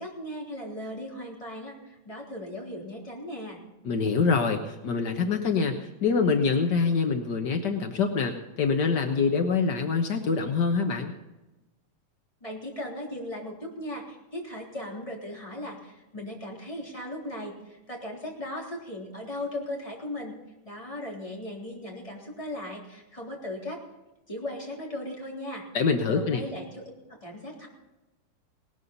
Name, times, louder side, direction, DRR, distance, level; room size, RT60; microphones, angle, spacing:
voice 1, 0.0-3.6 12.4-20.4 20.6-23.8 24.3-25.6 26.1-27.7, left 1 dB, 10° left, -2 dB, 3.2 m, -37 dB
voice 2, 3.8-11.1 25.7-26.4, left 5 dB, 80° left, 4 dB, 0.9 m, -25 dB
18.5 x 13.0 x 4.1 m, 1.0 s
omnidirectional pair, 3.6 m